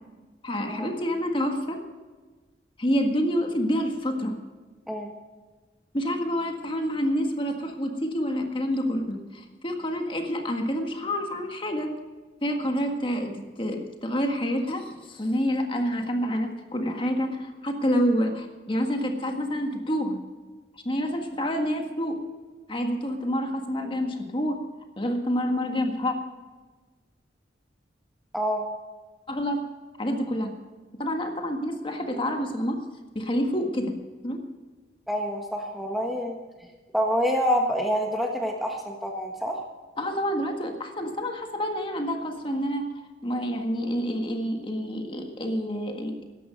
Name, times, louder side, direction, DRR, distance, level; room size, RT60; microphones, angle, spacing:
voice 1, 0.4-1.8 2.8-4.3 5.9-11.9 12.4-20.2 20.8-22.2 22.7-24.6 25.0-26.1 29.3-29.6 30.0-30.5 31.0-32.8 33.1-33.9 34.2-34.4 40.0-42.8 43.2-46.1, equal, 30° left, 3 dB, 1.7 m, -28 dB
voice 2, 28.3-28.7 35.1-36.4 36.9-39.6, equal, ahead, 1 dB, 1.3 m, -27 dB
14.0 x 11.5 x 5.3 m, 1.3 s
head